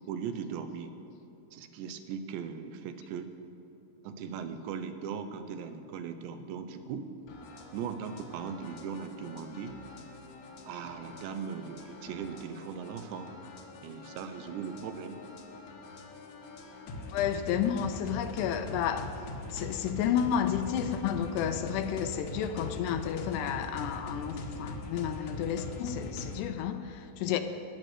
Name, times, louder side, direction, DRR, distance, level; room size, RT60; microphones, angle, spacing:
voice 1, 0.1-0.9 1.5-3.3 4.0-7.1 7.7-9.8 10.7-13.3 13.8-15.2 27.2-27.4, right 7 dB, 90° right, 8 dB, 3.1 m, -39 dB
sound 1, 7.3-26.5, left 2 dB, 65° left, 1.9 m, -42 dB
voice 2, 17.1-19.1 19.5-27.4, left 9 dB, 85° left, 8 dB, 2.8 m, -31 dB
15.0 x 11.0 x 6.4 m, 2.9 s
omnidirectional pair, 5.0 m